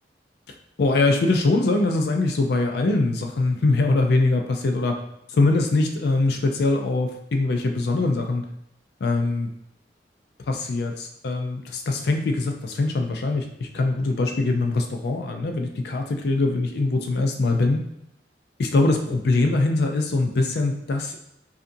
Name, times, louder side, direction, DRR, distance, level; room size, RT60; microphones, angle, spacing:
voice 1, 0.8-5.0 5.3-8.5 9.0-9.5 10.5-17.8 18.6-21.2, left 2 dB, 65° left, 3 dB, 0.4 m, -22 dB
5.3 x 2.5 x 2.6 m, 0.79 s
head